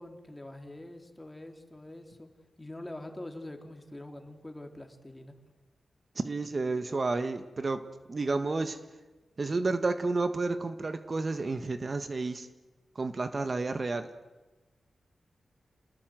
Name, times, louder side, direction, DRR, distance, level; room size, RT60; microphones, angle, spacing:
voice 1, 0.0-2.3 2.6-5.3, left 1 dB, 15° left, 4 dB, 3.6 m, -44 dB
voice 2, 6.1-8.8 9.4-12.5 12.9-14.1, right 3 dB, 45° right, 10 dB, 1.6 m, -31 dB
29.0 x 20.0 x 7.9 m, 1.2 s
cardioid pair, 60°, 0 cm